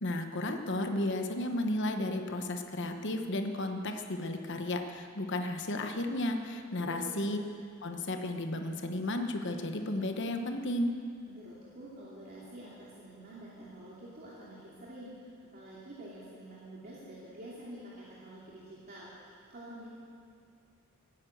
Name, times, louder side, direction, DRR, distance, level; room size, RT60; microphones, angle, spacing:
voice 1, 0.0-7.4 7.8-11.0, left 1 dB, 55° left, 5 dB, 1.1 m, -33 dB
voice 2, 6.8-7.2 11.2-19.9, right 1 dB, 45° right, -8 dB, 2.7 m, -48 dB
18.0 x 9.7 x 8.0 m, 2.3 s
head